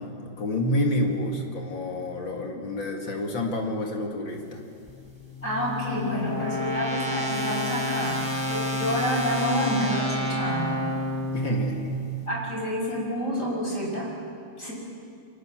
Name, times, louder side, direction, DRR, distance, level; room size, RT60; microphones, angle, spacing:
voice 1, 0.0-4.6 11.3-12.0, left 1 dB, 70° left, 2 dB, 3.0 m, -28 dB
sound 1, 4.9-12.0, left 1 dB, 10° left, 4.7 m, -29 dB
voice 2, 5.4-8.2 8.5-10.8 11.4-11.5 12.3-14.1 14.6-14.7, equal, 40° left, -2 dB, 6.8 m, -28 dB
29.5 x 23.5 x 7.7 m, 2.4 s
omnidirectional pair, 2.1 m